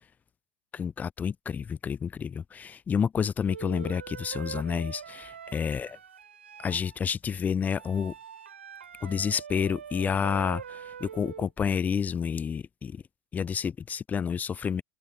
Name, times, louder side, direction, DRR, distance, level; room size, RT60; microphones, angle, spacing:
voice 1, 0.7-6.0 6.6-8.1 9.0-13.0 13.3-14.8, left 7 dB, 25° left, 0.5 m, -29 dB
Wind instrument woodwind instrument, 3.5-7.0 7.8-11.5, right 8 dB, 85° right, 5.2 m, -43 dB
hypercardioid pair, 80°, 6 cm